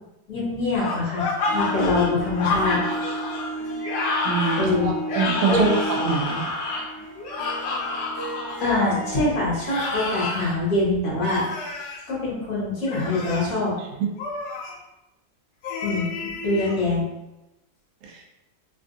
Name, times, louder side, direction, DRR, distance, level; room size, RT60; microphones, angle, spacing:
voice 1, 0.3-2.8 4.6-4.9 5.5-5.7 8.6-11.5 12.1-13.7 15.8-17.1, left 2 dB, 50° left, -7 dB, 1.5 m, -24 dB
sound 1, 0.8-8.6 9.6-10.5 11.2-12.0 12.8-13.5 14.2-14.7 15.6-16.8, left 3 dB, 75° left, 1.2 m, -29 dB
Harp, 1.4-9.3, equal, 20° left, 0.7 m, -34 dB
voice 2, 4.2-5.7 6.0-6.4 14.0-14.1 18.0-18.2, right 6 dB, 75° right, 0 dB, 0.7 m, -24 dB
3.5 x 2.5 x 2.5 m, 0.95 s
omnidirectional pair, 1.9 m